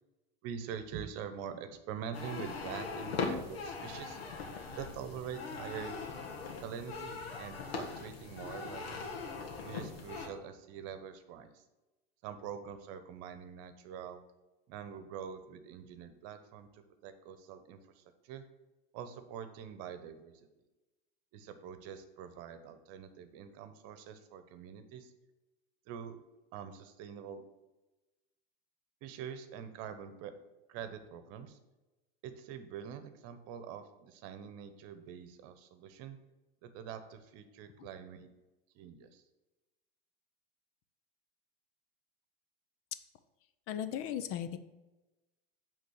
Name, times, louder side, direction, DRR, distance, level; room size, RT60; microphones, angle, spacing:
voice 1, 0.4-4.2 4.7-6.0 6.6-9.0 9.6-11.6 12.2-14.2 14.7-18.4 18.9-20.5 21.3-25.1 25.9-26.2 26.5-27.4 29.0-30.3 30.7-31.6 32.2-36.2 36.6-38.3 38.7-39.2, right 8 dB, 55° right, 10 dB, 1.0 m, -45 dB
sound 1, 2.1-10.3, left 4 dB, 90° left, 1.5 m, -40 dB
voice 2, 43.7-44.6, left 10 dB, 50° left, 12 dB, 0.7 m, -37 dB
8.3 x 3.7 x 6.5 m, 1.1 s
hypercardioid pair, 110°, 30 cm